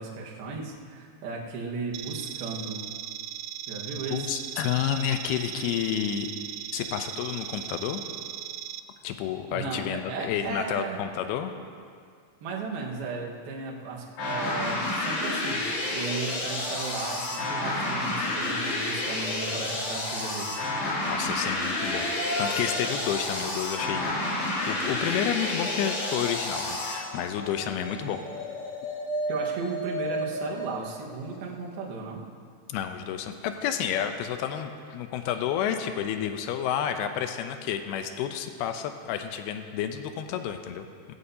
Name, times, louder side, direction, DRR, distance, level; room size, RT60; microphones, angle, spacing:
voice 1, 0.0-2.8 3.7-4.3 9.5-11.0 12.4-20.5 29.3-32.2, right 4 dB, 65° right, -2 dB, 3.1 m, -35 dB
sound 1, 1.9-8.8, right 12 dB, 85° right, 2.9 m, -38 dB
voice 2, 3.9-6.3 6.7-8.0 9.0-11.5 21.1-22.1 22.4-28.2 32.7-41.1, left 9 dB, 85° left, 7 dB, 2.3 m, -30 dB
sound 2, 14.2-27.0, left 2 dB, 65° left, 4.7 m, -30 dB
sound 3, 21.5-31.7, equal, 50° left, 1.9 m, -36 dB
18.5 x 16.0 x 2.8 m, 2.1 s
omnidirectional pair, 5.2 m